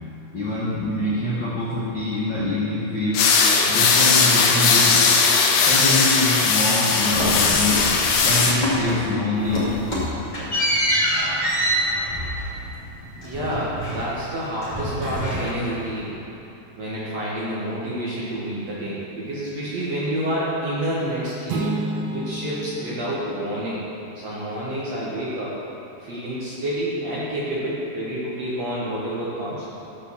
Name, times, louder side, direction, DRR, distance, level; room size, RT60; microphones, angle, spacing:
voice 1, 0.3-3.3 3.7-5.0 5.6-7.8 8.2-9.7, left 1 dB, 65° left, -9 dB, 1.1 m, -25 dB
sound 1, 3.1-8.6, left 5 dB, 90° left, 3.2 m, -18 dB
sound 2, 7.1-8.3 8.6-9.1 9.4-14.3 14.6-15.9, equal, 25° left, 0.9 m, -26 dB
voice 2, 13.2-16.1 16.8-21.8 22.1-23.8 24.2-25.5 26.0-29.7, equal, 60° right, -8 dB, 1.9 m, -28 dB
sound 3, 21.5-24.3, right 2 dB, 85° right, 3.1 m, -31 dB
12.5 x 5.0 x 7.0 m, 3.0 s
omnidirectional pair, 4.9 m